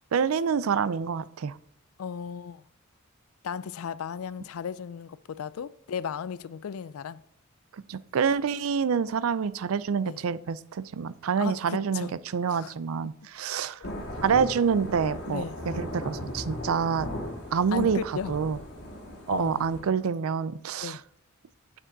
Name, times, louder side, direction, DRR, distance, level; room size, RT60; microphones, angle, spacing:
voice 1, 0.1-1.5 7.9-13.8 14.2-17.1 17.5-18.6 19.3-21.0, right 6 dB, 75° right, 0.4 m, -27 dB
voice 2, 2.0-2.6 3.4-7.2 10.0-10.2 11.4-12.1 12.5-12.7 15.3-15.5 17.7-18.3 19.3-19.8 20.8-21.0, left 7 dB, 80° left, 0.4 m, -35 dB
Thunder / Rain, 13.8-19.8, left 1 dB, 60° left, 2.4 m, -37 dB
9.1 x 6.1 x 3.9 m
head